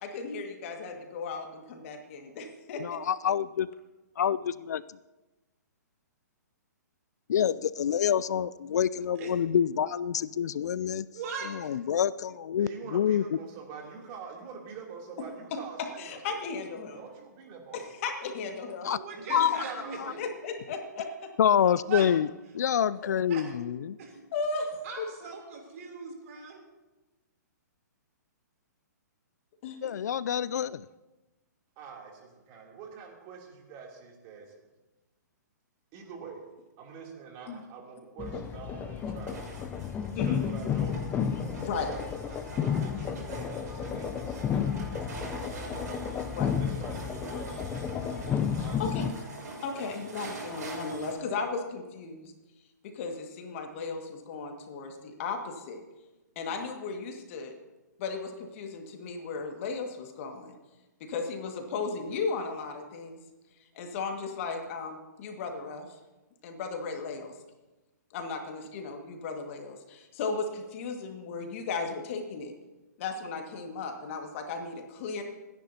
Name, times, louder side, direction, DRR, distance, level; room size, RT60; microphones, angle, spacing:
voice 1, 0.0-3.0 15.5-17.0 17.7-18.9 20.2-21.3 24.3-25.1 29.6-29.8 37.5-37.6 40.1-40.4 41.6-42.0 43.9-44.1 46.3-46.6 48.8-49.1 49.6-52.3 52.8-55.8 56.4-57.5 58.0-60.5 61.0-63.2 63.8-65.9 66.4-67.3 68.1-72.5 73.0-75.2, left 4 dB, 45° left, 4 dB, 2.0 m, -35 dB
voice 2, 2.8-3.7 4.2-5.0 7.3-11.1 11.5-13.2 18.8-19.0 19.3-19.6 20.0-20.1 21.4-22.3 22.5-23.9 29.8-30.9, left 9 dB, 65° left, 18 dB, 0.4 m, -27 dB
voice 3, 11.1-11.8 18.9-20.2 21.9-22.1 23.3-23.6 24.0-24.1 24.8-26.6, right 5 dB, 50° right, 1 dB, 3.3 m, -39 dB
voice 4, 12.6-16.4 16.9-17.8 19.1-20.2 31.8-34.5 35.9-36.4 36.8-39.5 40.1-41.1 41.4-45.9 46.6-48.1 48.5-49.1, right 5 dB, 35° right, -1 dB, 3.1 m, -45 dB
sound 1, 38.2-49.1, left 7 dB, 20° left, 0.7 m, -32 dB
sound 2, 38.3-51.1, right 2 dB, 70° right, 5.8 m, -44 dB
27.5 x 10.5 x 2.9 m, 1.1 s
hypercardioid pair, 130°, 10 cm